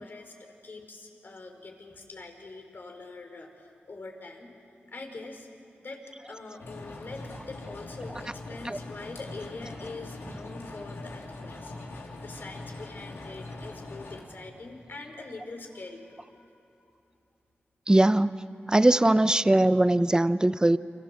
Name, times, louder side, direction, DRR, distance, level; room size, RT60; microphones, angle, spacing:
voice 1, 0.0-4.5 4.9-5.5 5.8-6.0 6.3-11.7 12.2-16.6, left 3 dB, 60° left, 3 dB, 4.9 m, -43 dB
sound 1, 6.6-14.2, left 2 dB, 85° left, 3.9 m, -42 dB
voice 2, 17.9-18.4 18.7-20.8, right 1 dB, 20° right, 13 dB, 0.9 m, -21 dB
29.5 x 25.5 x 7.6 m, 2.7 s
cardioid pair, 50°, 4 cm